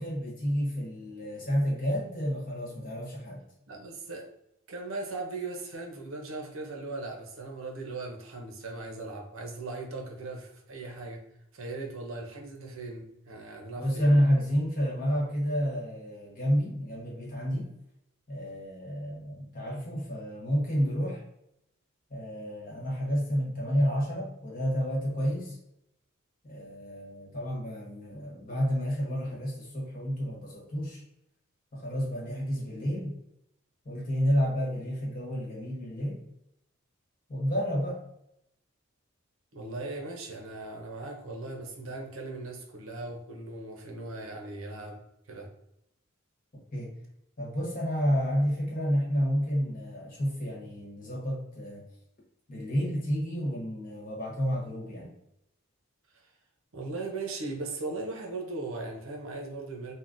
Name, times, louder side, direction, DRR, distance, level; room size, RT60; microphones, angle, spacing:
voice 1, 0.0-3.4 13.8-17.7 18.3-21.2 22.1-25.6 26.4-31.0 31.7-33.1 33.8-36.2 37.3-38.0 46.7-46.9 47.4-51.8 52.5-55.1, equal, 40° left, -4 dB, 1.1 m, -30 dB
voice 2, 3.7-4.3 4.7-11.2 11.5-14.1 39.5-45.0 45.3-45.5 56.1-56.3 56.7-59.9, right 3 dB, 70° right, 2 dB, 0.6 m, -38 dB
3.6 x 2.1 x 2.5 m, 0.81 s
head